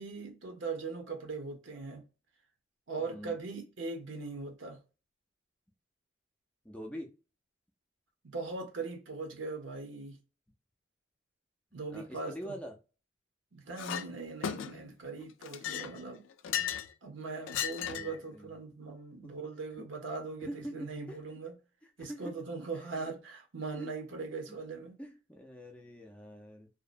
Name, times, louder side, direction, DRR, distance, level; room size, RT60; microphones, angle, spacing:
voice 1, 0.0-2.0 2.9-4.8 8.2-10.2 11.7-12.5 13.5-16.2 17.0-21.6 22.0-25.0, right 4 dB, 75° right, 0.9 m, -40 dB
voice 2, 3.0-3.4 6.6-7.1 11.9-12.8 17.8-18.5 19.2-19.3 20.4-21.2 22.0-22.4 22.7-23.0 23.8-24.6 25.0-26.7, equal, 5° left, 0.4 m, -45 dB
Chink clink, 13.8-14.1 14.4-14.9 15.4-16.9 17.5-18.2, left 9 dB, 85° left, 0.3 m, -36 dB
2.7 x 2.1 x 2.5 m
head